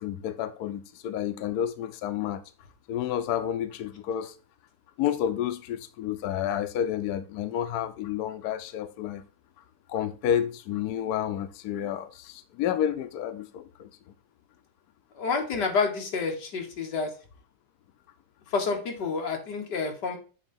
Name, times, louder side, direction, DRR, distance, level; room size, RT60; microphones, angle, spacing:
voice 1, 0.0-2.4 2.9-4.3 5.0-9.2 9.9-13.9, left 10 dB, 80° left, 0.8 m, -30 dB
voice 2, 15.2-17.1 18.5-20.2, left 4 dB, 55° left, 1.9 m, -28 dB
8.1 x 3.2 x 5.4 m
omnidirectional pair, 2.3 m